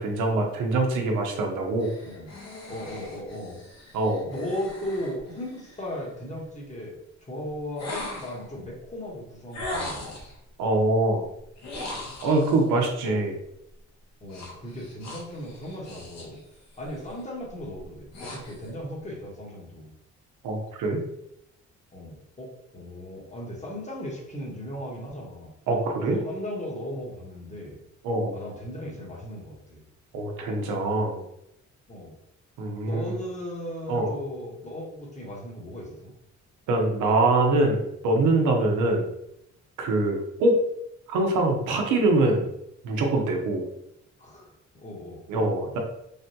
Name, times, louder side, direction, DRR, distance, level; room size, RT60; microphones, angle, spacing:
voice 1, 0.0-1.9 3.9-4.3 10.6-11.2 12.2-13.3 20.4-21.0 25.7-26.2 28.0-28.3 30.1-31.2 32.6-33.2 33.9-34.1 36.7-39.1 39.8-40.6 41.1-42.5 42.8-43.6 45.3-45.8, right 2 dB, 90° right, 2 dB, 0.7 m, -24 dB
sound 1, 1.8-6.0 7.8-8.5 9.5-10.4 11.6-12.6 14.3-16.4 16.7-17.1 17.7-18.7, left 1 dB, 60° left, 0.9 m, -39 dB
voice 2, 2.7-3.6 4.2-10.1 13.0-13.2 14.2-16.4 16.8-19.9 21.9-25.5 26.0-27.8 28.3-29.8 31.9-32.1 32.8-36.1 44.2-44.5 44.8-45.2, left 1 dB, 25° left, -2 dB, 1.0 m, -36 dB
3.3 x 2.2 x 2.7 m, 0.81 s
cardioid pair, 90°, 30 cm